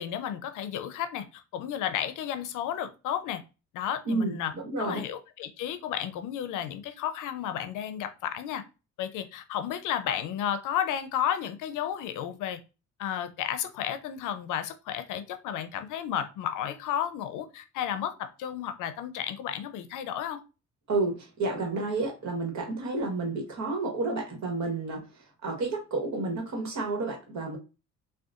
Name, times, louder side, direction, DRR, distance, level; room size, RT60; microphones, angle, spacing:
voice 1, 0.0-3.4 3.7-4.5 4.8-8.6 9.0-12.6 13.0-20.4, left 10 dB, 85° left, 10 dB, 0.5 m, -32 dB
voice 2, 4.1-5.0 20.9-25.0 25.4-27.6, right 3 dB, 65° right, 1 dB, 1.3 m, -30 dB
3.7 x 2.3 x 2.4 m, 0.30 s
cardioid pair, 90°, 30 cm